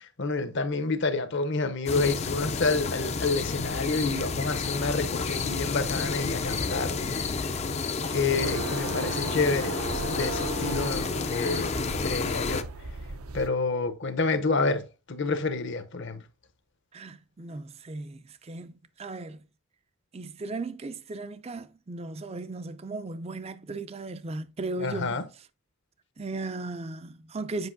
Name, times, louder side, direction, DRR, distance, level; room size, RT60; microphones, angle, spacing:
voice 1, 0.2-7.0 8.1-12.7 13.3-16.2 24.8-25.2, left 3 dB, 55° left, 0.8 m, -29 dB
sound 1, 1.9-12.6, left 4 dB, 30° left, 0.4 m, -30 dB
sound 2, 8.0-13.5, right 2 dB, 75° right, 0.7 m, -36 dB
voice 2, 16.9-19.4 20.1-25.5 26.2-27.7, right 2 dB, 30° right, 0.4 m, -37 dB
8.0 x 5.3 x 2.6 m
head